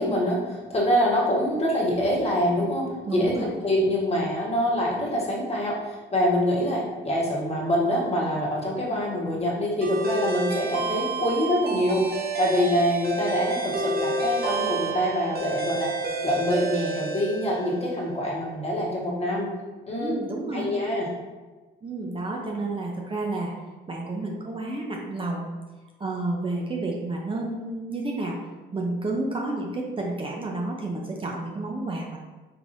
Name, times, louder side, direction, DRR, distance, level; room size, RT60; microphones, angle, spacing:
voice 1, 0.0-15.9 16.2-19.5 19.9-20.1 20.5-21.1, equal, 30° left, -4 dB, 1.4 m, -25 dB
voice 2, 3.1-3.4 20.0-20.7 21.8-23.5 23.9-25.5 26.0-28.4 28.7-32.2, right 2 dB, 25° right, -1 dB, 0.6 m, -30 dB
sound 1, 9.8-17.9, right 3 dB, 50° right, 0.9 m, -29 dB
4.7 x 3.7 x 2.6 m, 1.3 s
cardioid pair, 90°, 20 cm